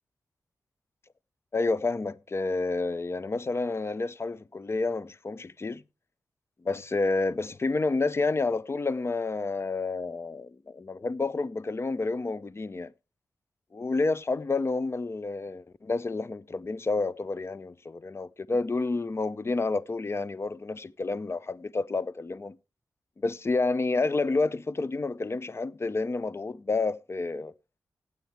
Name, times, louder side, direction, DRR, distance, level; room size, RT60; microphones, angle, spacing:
voice 1, 1.5-5.8 6.6-12.9 13.7-22.6 23.2-27.5, left 3 dB, 40° left, 0.6 m, -29 dB
15.5 x 8.3 x 3.3 m
cardioid pair, 55°, 6 cm